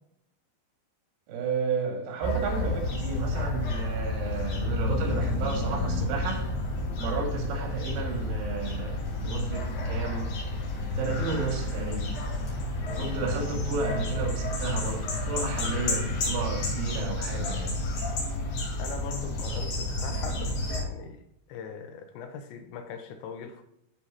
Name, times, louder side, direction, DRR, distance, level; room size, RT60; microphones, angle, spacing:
voice 1, 1.3-6.4 7.0-10.3 11.0-12.1 13.0-17.7, right 4 dB, 90° right, 4.5 m, -32 dB
sound 1, 2.2-20.8, left 2 dB, 60° left, 4.3 m, -30 dB
voice 2, 12.8-13.1 18.7-21.2 21.5-23.6, left 6 dB, 75° left, 3.0 m, -41 dB
14.0 x 5.1 x 2.8 m
omnidirectional pair, 5.5 m